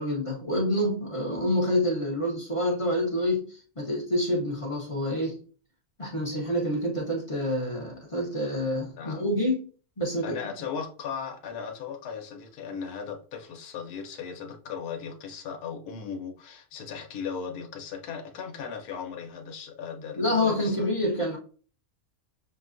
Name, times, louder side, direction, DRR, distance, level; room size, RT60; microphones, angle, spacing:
voice 1, 0.0-5.4 6.0-9.6 10.0-10.4 20.1-21.4, left 1 dB, 30° left, -1 dB, 0.6 m, -27 dB
voice 2, 10.2-20.9, left 6 dB, 85° left, 3 dB, 1.2 m, -37 dB
6.4 x 2.3 x 2.5 m, 0.40 s
omnidirectional pair, 1.6 m